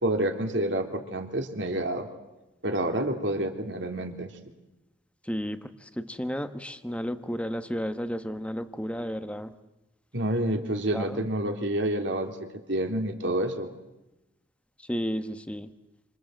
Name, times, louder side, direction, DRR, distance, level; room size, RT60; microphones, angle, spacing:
voice 1, 0.0-2.1 2.6-4.3 10.1-12.4 12.7-13.7, right 1 dB, 60° right, 4 dB, 3.2 m, -28 dB
voice 2, 5.2-9.5 10.9-11.2 14.8-15.7, equal, 5° left, 9 dB, 1.1 m, -33 dB
28.5 x 26.5 x 7.8 m, 0.96 s
head